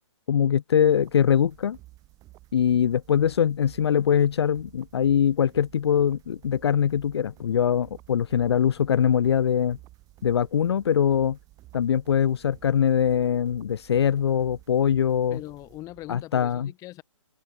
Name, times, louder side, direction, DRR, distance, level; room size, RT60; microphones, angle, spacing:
voice 1, 0.3-1.8 2.5-9.8 10.2-11.4 11.7-15.4 16.1-16.7, left 8 dB, 55° left, 1.2 m, -22 dB
sound 1, 0.8-16.3, right 17 dB, 20° right, 3.6 m, -53 dB
voice 2, 15.3-17.0, left 17 dB, 20° left, 2.2 m, -41 dB
figure-of-eight pair, 135°, 17 cm